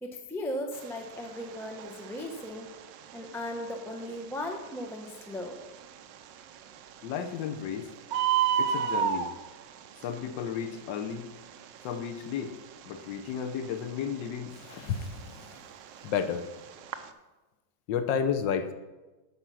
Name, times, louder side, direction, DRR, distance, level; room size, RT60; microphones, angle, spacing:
voice 1, 0.0-2.7 3.1-5.6, left 1 dB, 5° left, 3 dB, 0.4 m, -37 dB
Bird, 0.7-17.1, right 8 dB, 90° right, 1.3 m, -35 dB
voice 2, 7.0-7.9 8.6-9.3 10.0-11.3 11.8-12.6 12.9-15.6 16.0-16.5 17.9-18.7, left 7 dB, 90° left, 9 dB, 1.4 m, -32 dB
8.8 x 5.5 x 6.2 m, 1.1 s
omnidirectional pair, 1.9 m